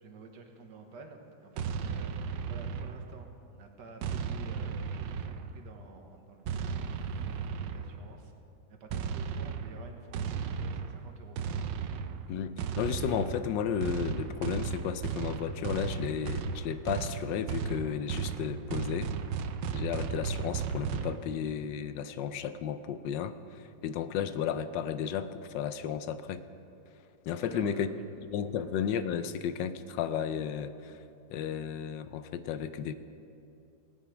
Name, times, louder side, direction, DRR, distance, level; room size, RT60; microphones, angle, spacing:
voice 1, 0.0-8.3 8.7-11.4 27.5-28.0 28.6-28.7, right 4 dB, 70° right, 4 dB, 1.8 m, -51 dB
sound 1, 1.6-3.3 4.0-5.7 6.5-8.1 8.9-21.2, right 6 dB, 90° right, 1.3 m, -35 dB
voice 2, 12.3-19.1 19.7-26.4 27.3-27.9 28.3-31.0 31.3-33.0, left 8 dB, 80° left, 12 dB, 1.3 m, -33 dB
17.5 x 9.4 x 5.0 m, 2.7 s
omnidirectional pair, 1.9 m